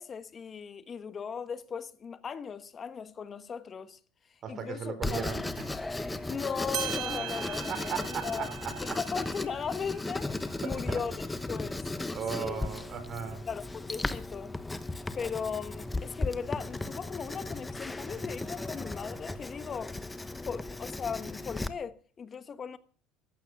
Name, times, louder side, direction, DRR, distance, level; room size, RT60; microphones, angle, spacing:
voice 1, 0.0-4.0 4.5-5.2 6.3-8.5 8.9-12.6 13.3-14.5 14.9-20.0 20.4-22.8, left 6 dB, 30° left, 1.2 m, -38 dB
voice 2, 4.4-6.0 6.3-6.4 7.7-9.0 10.6-11.0 12.1-13.5, right 7 dB, 40° right, 4.0 m, -37 dB
Writing, 5.0-21.7, left 2 dB, 10° left, 1.0 m, -36 dB
sound 1, 6.4-6.5 6.7-11.8, right 14 dB, 60° right, 1.7 m, -41 dB
15.5 x 11.5 x 6.0 m
supercardioid pair, 115°, 0 cm